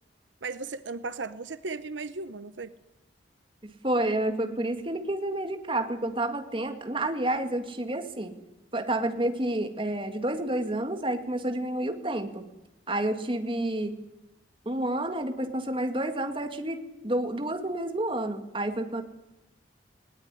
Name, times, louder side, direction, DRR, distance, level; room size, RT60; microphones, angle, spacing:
voice 1, 0.4-2.7, right 3 dB, 85° right, 14 dB, 0.9 m, -36 dB
voice 2, 3.6-8.3 8.7-12.5 12.9-13.9 14.7-19.0, right 1 dB, 30° right, 7 dB, 2.0 m, -29 dB
19.5 x 18.5 x 10.0 m, 0.93 s
head